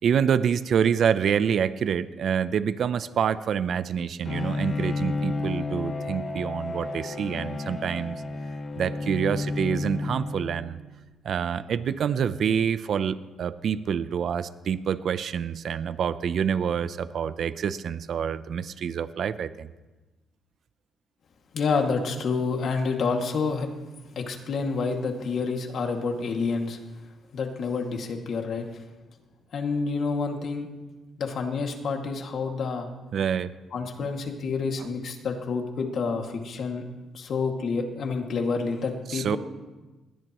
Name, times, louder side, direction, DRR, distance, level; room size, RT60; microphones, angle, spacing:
voice 1, 0.0-8.2 8.8-10.8 11.2-19.7 33.1-33.5 34.0-34.1 34.8-34.9 39.1-39.4, right 7 dB, 60° right, 14 dB, 0.6 m, -27 dB
Bowed string instrument, 4.3-10.9, left 3 dB, 45° left, 2.1 m, -31 dB
voice 2, 21.5-23.7 24.2-26.8 27.3-28.7 29.5-30.7 31.2-32.9 33.7-36.8 37.1-39.4, left 4 dB, 60° left, 3 dB, 2.2 m, -28 dB
20.5 x 17.0 x 3.1 m, 1.2 s
cardioid pair, 90°, 0 cm